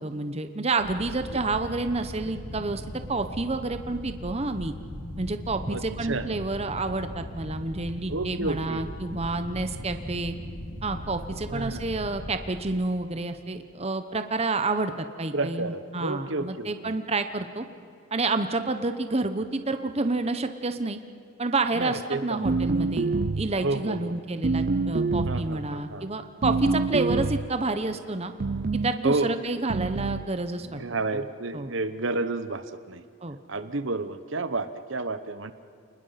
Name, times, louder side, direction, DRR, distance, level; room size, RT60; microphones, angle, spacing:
voice 1, 0.0-2.8 3.1-4.7 5.2-10.3 10.8-17.6 18.1-21.0 21.4-23.1 23.3-28.3 28.7-30.8 31.1-31.2 31.5-31.7 33.2-33.4, right 3 dB, 30° right, 8 dB, 0.9 m, -29 dB
sound 1, 0.8-12.3, equal, 50° left, 5.5 m, -39 dB
voice 2, 5.7-6.3 8.1-8.8 11.5-11.8 15.3-16.9 21.8-22.5 23.6-24.1 25.3-26.1 29.0-29.3 30.7-33.0 33.5-35.5, right 3 dB, 60° right, 11 dB, 1.0 m, -30 dB
sound 2, 22.4-23.6 24.4-25.5 26.4-27.5 28.4-29.0 29.7-30.3, right 3 dB, 45° right, 0.5 m, -26 dB
30.0 x 20.5 x 5.8 m, 2.4 s
head